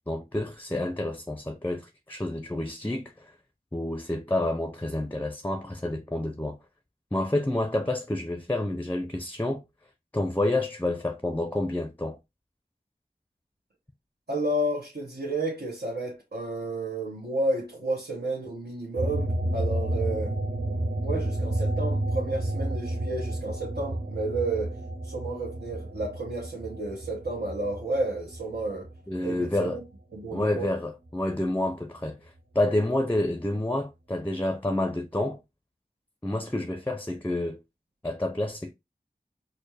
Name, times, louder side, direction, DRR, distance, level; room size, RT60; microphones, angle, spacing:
voice 1, 0.1-3.3 3.7-6.6 7.1-9.6 10.1-12.2 29.1-29.8 30.3-35.4 36.2-37.6 38.0-38.7, left 1 dB, 10° left, 0.5 m, -29 dB
voice 2, 14.3-20.4 21.0-28.9 29.2-29.8 30.1-30.7, right 2 dB, 85° right, 1.5 m, -31 dB
sound 1, 19.0-29.9 30.2-31.7, right 1 dB, 65° right, 1.0 m, -31 dB
4.4 x 2.1 x 3.2 m
wide cardioid pair, 45°, 17 cm